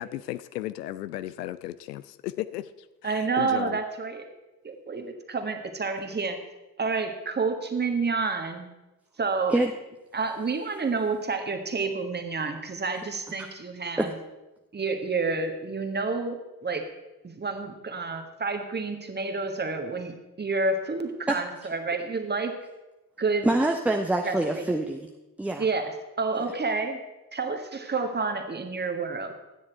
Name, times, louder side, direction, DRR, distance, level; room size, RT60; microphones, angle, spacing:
voice 1, 0.0-2.7 3.0-3.8, left 14 dB, 75° left, 0.6 m, -35 dB
voice 2, 3.0-4.2 4.6-6.4 6.8-8.7 9.2-9.5 10.1-14.1 14.7-16.4 16.6-16.8 17.2-22.5 23.2-23.5 24.2-24.7 25.6-25.9 26.2-27.0 27.3-29.3, right 4 dB, 20° right, 1.6 m, -29 dB
voice 3, 23.4-25.1 25.4-25.7 26.5-26.6, right 1 dB, 5° right, 0.7 m, -25 dB
13.0 x 9.5 x 4.5 m
figure-of-eight pair, 50°, 49 cm